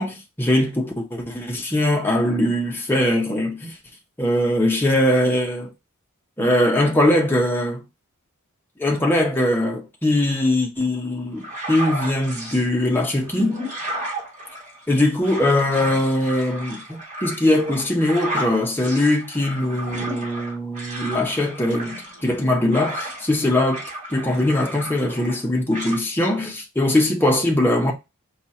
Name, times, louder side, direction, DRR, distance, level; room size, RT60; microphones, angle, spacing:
voice 1, 0.0-3.8 4.2-5.7 6.4-7.8 8.8-13.6 14.9-23.8 24.1-27.9, left 1 dB, 10° left, 0.9 m, -21 dB
sound 1, 11.4-12.6 13.1-23.4 23.7-25.4 25.7-26.0, right 1 dB, 35° right, 1.9 m, -33 dB
4.3 x 2.5 x 4.2 m
head